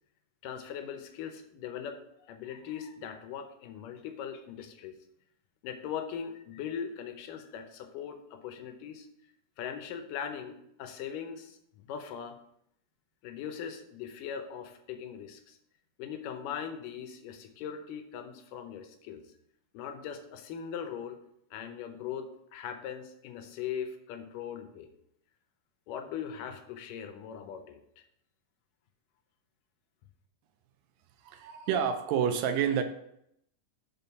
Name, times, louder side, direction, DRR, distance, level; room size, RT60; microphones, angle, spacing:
voice 1, 0.4-5.0 5.6-9.1 9.6-12.4 13.2-15.6 16.0-19.2 19.7-21.2 21.5-24.9 25.9-28.0, left 8 dB, 80° left, 6 dB, 2.3 m, -40 dB
voice 2, 31.2-32.8, right 8 dB, 80° right, 7 dB, 2.4 m, -28 dB
5.4 x 5.4 x 5.7 m, 0.75 s
omnidirectional pair, 3.9 m